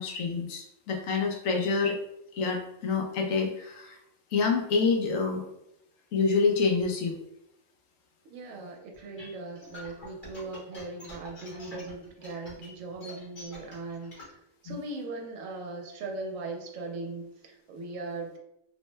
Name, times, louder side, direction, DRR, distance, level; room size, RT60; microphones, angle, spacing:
voice 1, 0.0-2.0 2.3-4.0 4.3-5.4 6.1-7.2 14.7-14.8, left 4 dB, 80° left, 2 dB, 1.0 m, -27 dB
voice 2, 8.2-18.4, right 3 dB, 85° right, 2 dB, 1.0 m, -39 dB
sound 1, 8.9-14.3, left 2 dB, 45° left, 1.1 m, -46 dB
3.1 x 2.1 x 3.2 m, 0.81 s
omnidirectional pair, 1.4 m